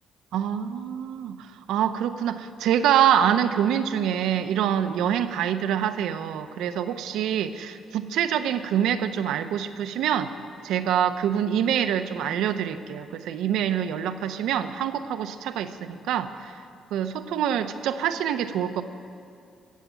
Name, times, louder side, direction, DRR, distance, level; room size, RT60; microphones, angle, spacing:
voice 1, 0.3-10.3 10.6-16.5 16.9-18.8, right 9 dB, 85° right, 10 dB, 0.7 m, -25 dB
15.5 x 7.4 x 9.1 m, 2.5 s
cardioid pair, 90°, 0 cm